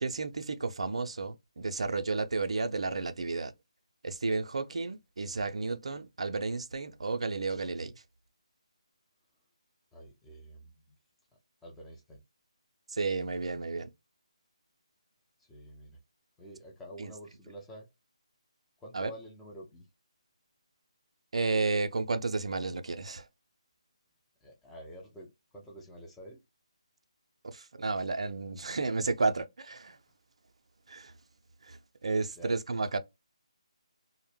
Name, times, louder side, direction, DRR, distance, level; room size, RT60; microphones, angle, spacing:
voice 1, 0.0-3.5 4.0-8.0 12.9-13.9 17.0-17.1 18.9-19.1 21.3-23.3 27.4-30.0 30.9-31.1 31.6-33.0, right 3 dB, 65° right, 0.4 m, -32 dB
voice 2, 9.9-10.7 11.6-12.2 15.4-16.0 16.4-17.9 18.8-19.9 24.4-26.4 32.4-32.5, right 1 dB, 5° left, 0.4 m, -48 dB
2.0 x 2.0 x 3.1 m
figure-of-eight pair, 150°, 3 cm